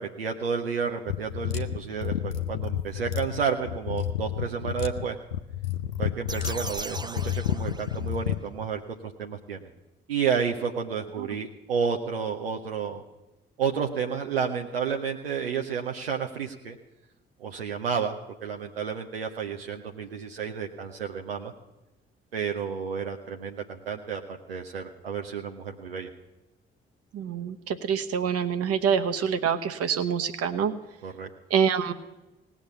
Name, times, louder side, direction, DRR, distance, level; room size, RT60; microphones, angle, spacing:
voice 1, 0.0-5.2 6.0-9.7 10.1-13.0 13.6-16.8 17.4-18.1 18.4-21.5 22.3-26.1 31.0-31.3, right 6 dB, 85° right, 2 dB, 0.6 m, -31 dB
sound 1, 1.1-8.4, left 10 dB, 85° left, 0.5 m, -30 dB
sound 2, 6.3-8.4, right 3 dB, 15° right, 0.6 m, -38 dB
voice 2, 27.1-30.7 31.5-31.9, right 7 dB, 55° right, 9 dB, 1.0 m, -26 dB
18.0 x 7.1 x 8.1 m, 1.0 s
figure-of-eight pair, 40°, 29 cm